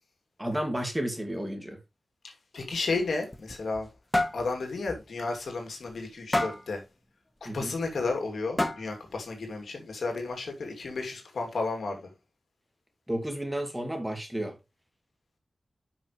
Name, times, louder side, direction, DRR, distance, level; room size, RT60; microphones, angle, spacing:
voice 1, 0.4-1.8 7.5-7.7 13.1-14.6, right 1 dB, 10° right, 2.3 m, -32 dB
voice 2, 2.2-3.9 4.3-6.8 7.4-12.1, left 3 dB, 85° left, 2.8 m, -33 dB
sound 1, 3.1-3.9 4.1-4.4 4.9-5.0 5.4-5.5 6.3-6.7 7.8-7.9 8.6-9.0, left 1 dB, 15° left, 1.3 m, -28 dB
10.5 x 5.9 x 3.2 m
wide cardioid pair, 95°, 0 cm